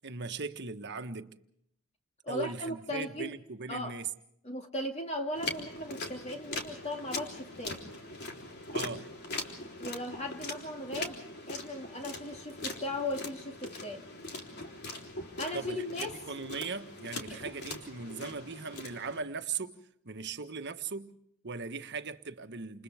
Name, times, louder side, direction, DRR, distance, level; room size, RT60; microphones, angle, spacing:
voice 1, 0.0-1.3 2.3-4.1 8.7-9.1 15.5-19.8 20.0-22.8, right 4 dB, 55° right, 1.4 m, -39 dB
voice 2, 2.2-3.3 3.7-4.0 4.4-7.8 9.8-11.2 11.5-14.1 15.4-16.2 17.3-17.4, left 1 dB, 30° left, 2.3 m, -37 dB
sound 1, 5.4-19.2, left 2 dB, 50° left, 3.7 m, -41 dB
29.0 x 28.5 x 3.5 m
head